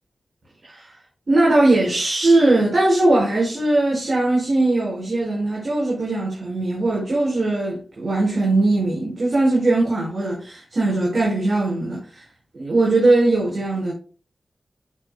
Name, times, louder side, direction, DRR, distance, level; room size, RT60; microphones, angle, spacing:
voice 1, 1.3-12.2 12.5-13.9, right 2 dB, 55° right, 4.8 m, -20 dB
13.5 x 6.7 x 2.2 m
cardioid pair, 45°, 0 cm